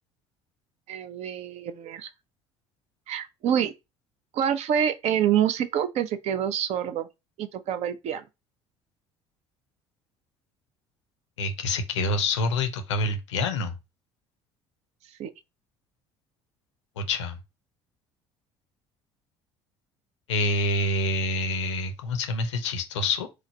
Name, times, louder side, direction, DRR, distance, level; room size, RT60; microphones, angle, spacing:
voice 1, 0.9-2.1 3.1-3.7 4.3-7.1 7.4-8.2 15.1-15.3, right 9 dB, 45° right, 0.4 m, -27 dB
voice 2, 11.4-13.7 17.0-17.4 20.3-23.3, left 2 dB, 75° left, 0.5 m, -27 dB
3.1 x 2.0 x 3.9 m
figure-of-eight pair, 55°, 15 cm